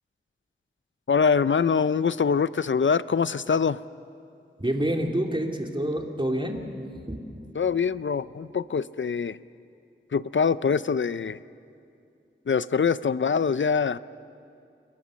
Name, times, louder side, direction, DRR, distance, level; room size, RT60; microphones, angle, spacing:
voice 1, 1.1-3.8 7.6-9.4 10.1-11.4 12.5-14.0, left 6 dB, 65° left, 16 dB, 0.5 m, -24 dB
voice 2, 4.6-6.7 7.1-7.2, right 1 dB, 25° right, 2 dB, 2.6 m, -27 dB
28.5 x 22.5 x 6.3 m, 2.5 s
wide cardioid pair, 60°, 21 cm